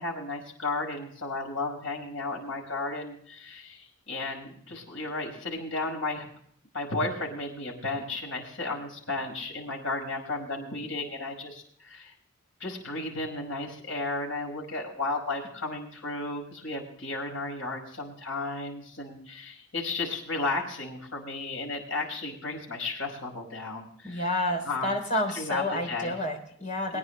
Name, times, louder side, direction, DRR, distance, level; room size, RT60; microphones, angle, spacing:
voice 1, 0.0-6.3 6.7-12.1 12.6-24.2 24.7-24.9 25.3-25.6 25.9-26.1 26.9-27.0, left 2 dB, 80° left, 0 dB, 5.4 m, -34 dB
voice 2, 24.0-27.0, left 1 dB, 40° left, 3 dB, 3.5 m, -29 dB
23.5 x 10.0 x 3.3 m, 0.63 s
head